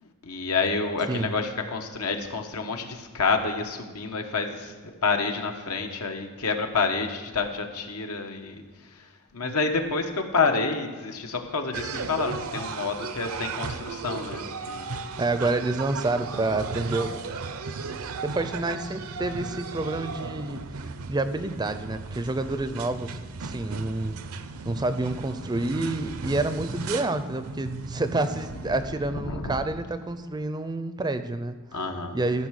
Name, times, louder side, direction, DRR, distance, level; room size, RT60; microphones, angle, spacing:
voice 1, 0.0-14.9 29.1-29.6 31.7-32.2, left 4 dB, 85° left, 4 dB, 1.2 m, -29 dB
sound 1, 11.7-28.9, right 4 dB, 70° right, 0.6 m, -36 dB
voice 2, 15.2-17.2 18.2-20.6 21.1-24.2 24.6-31.6 32.1-32.5, right 2 dB, 20° right, 11 dB, 0.5 m, -28 dB
14.0 x 5.7 x 6.3 m, 1.4 s
head